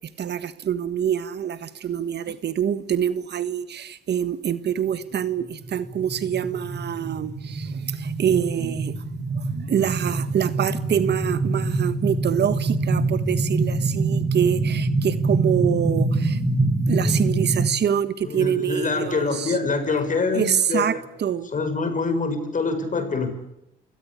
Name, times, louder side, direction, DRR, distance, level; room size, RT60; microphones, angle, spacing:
voice 1, 0.2-8.9 9.4-19.6 20.3-21.5, right 9 dB, 60° right, 1.5 m, -25 dB
sound 1, 5.4-17.7, right 3 dB, 15° right, 2.0 m, -25 dB
voice 2, 18.2-21.0 21.5-23.3, left 4 dB, 40° left, 6.6 m, -25 dB
29.0 x 17.5 x 8.7 m
cardioid pair, 90°, 20 cm